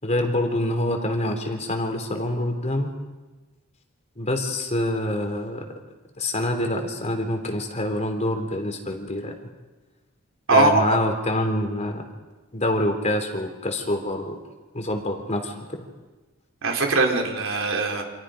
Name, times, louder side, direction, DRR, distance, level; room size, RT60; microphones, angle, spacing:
voice 1, 0.0-2.9 4.2-5.6 6.2-9.3 10.5-12.0 12.5-14.4 14.7-15.9, left 1 dB, 30° left, 4 dB, 3.5 m, -26 dB
voice 2, 10.5-11.0 16.6-18.0, right 3 dB, 65° right, 2 dB, 4.1 m, -21 dB
29.0 x 27.5 x 5.2 m, 1.2 s
head